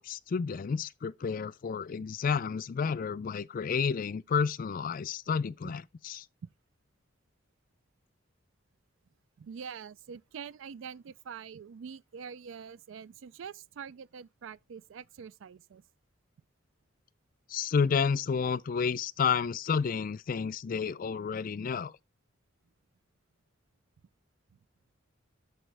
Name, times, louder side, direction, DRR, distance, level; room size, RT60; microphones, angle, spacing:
voice 1, 0.0-6.2 17.5-21.9, left 6 dB, 45° left, 0.4 m, -30 dB
voice 2, 9.4-15.8 24.5-24.6, right 6 dB, 70° right, 0.4 m, -45 dB
12.5 x 4.8 x 3.3 m
head